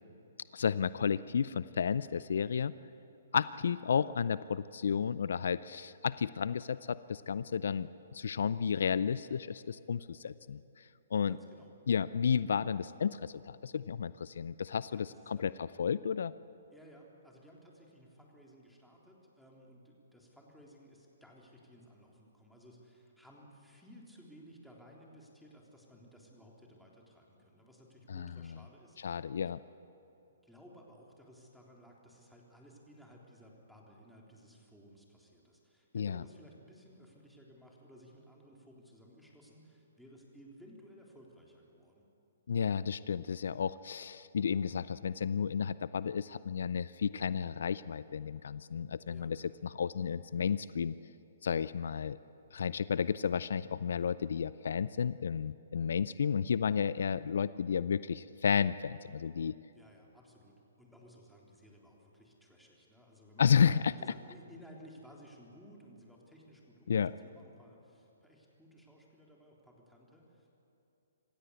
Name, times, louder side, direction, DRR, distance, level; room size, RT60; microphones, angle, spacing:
voice 1, 0.5-2.7 3.3-10.6 11.1-11.3 11.9-15.5 15.8-16.3 28.1-28.3 29.0-29.6 35.9-36.2 42.5-50.9 51.4-52.2 52.5-59.6 63.4-63.9 66.9-67.1, left 7 dB, 70° left, 17 dB, 0.5 m, -32 dB
voice 2, 11.3-11.7 14.9-15.5 16.7-29.2 30.4-42.1 49.1-49.3 59.8-60.5 60.8-70.5, equal, ahead, -3 dB, 3.6 m, -57 dB
27.0 x 15.5 x 8.2 m, 3.0 s
hypercardioid pair, 135°, 0 cm